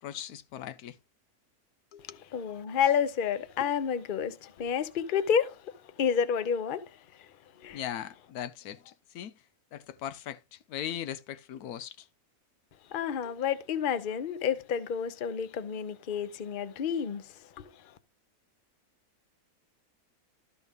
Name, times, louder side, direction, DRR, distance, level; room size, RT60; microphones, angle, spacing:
voice 1, 0.0-1.0 1.9-2.2 7.7-9.3 9.7-12.1 13.2-13.3, left 11 dB, 80° left, 1.1 m, -39 dB
voice 2, 2.3-7.3 7.6-7.8 12.9-17.9, left 7 dB, 45° left, 0.8 m, -30 dB
12.0 x 4.3 x 5.2 m
omnidirectional pair, 1.6 m